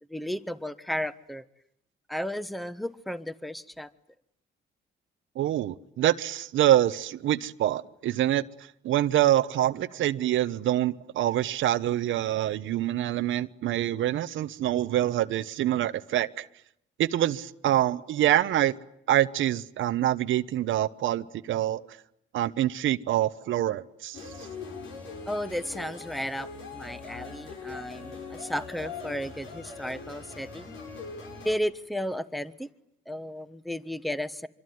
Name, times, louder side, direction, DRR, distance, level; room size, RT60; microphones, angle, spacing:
voice 1, 0.1-1.4 2.1-3.9 25.3-30.8 31.4-32.7 33.1-34.5, equal, ahead, 1.2 m, -34 dB
voice 2, 5.4-8.4 8.8-16.4 17.0-18.7 19.1-21.8 22.3-24.2, right 13 dB, 80° right, 1.0 m, -25 dB
sound 1, 24.1-31.6, left 4 dB, 80° left, 6.6 m, -41 dB
25.5 x 24.5 x 9.4 m
cardioid pair, 90°, 20 cm